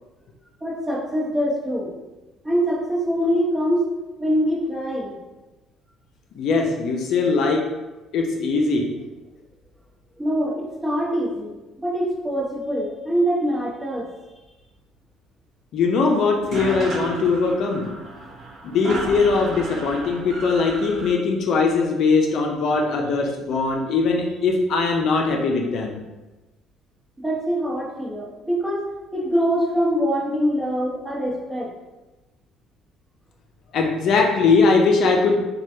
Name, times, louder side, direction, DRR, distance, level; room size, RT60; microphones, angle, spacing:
voice 1, 0.6-1.9 2.4-3.9 4.2-5.2 10.2-11.5 11.8-14.1 27.2-28.8 29.1-31.7, equal, 15° right, -5 dB, 1.0 m, -24 dB
voice 2, 6.4-7.7 8.1-8.9 15.7-17.9 18.6-26.0 33.7-35.3, left 4 dB, 65° left, 1 dB, 0.5 m, -20 dB
sound 1, 16.1-16.2 16.3-21.1, right 2 dB, 55° right, 0.7 m, -33 dB
3.1 x 2.3 x 2.7 m, 1.1 s
cardioid pair, 90°, 0 cm